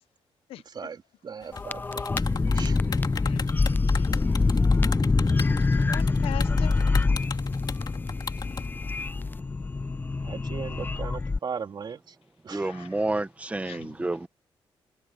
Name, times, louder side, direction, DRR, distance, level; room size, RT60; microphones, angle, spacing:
voice 1, 0.6-2.8 10.2-12.2 12.4-12.9, right 6 dB, 50° right, 3.6 m, -38 dB
sound 1, 1.4-8.7, left 5 dB, 45° left, 3.0 m, -36 dB
sound 2, 1.5-11.4, left 3 dB, 20° left, 0.4 m, -25 dB
voice 2, 2.8-4.3 5.7-6.9 8.5-8.6 12.5-12.9 13.6-13.9, left 13 dB, 85° left, 0.7 m, -42 dB
voice 3, 12.5-14.3, right 2 dB, 15° right, 1.1 m, -29 dB
cardioid pair, 80°, 9 cm